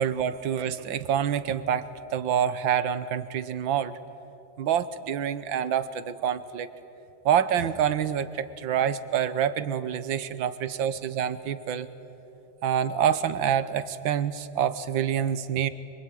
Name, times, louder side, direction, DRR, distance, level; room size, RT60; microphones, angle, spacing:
voice 1, 0.0-3.9 4.6-6.7 7.3-11.9 12.6-15.7, right 9 dB, 85° right, 13 dB, 1.8 m, -27 dB
26.0 x 25.0 x 9.1 m, 2.9 s
omnidirectional pair, 2.1 m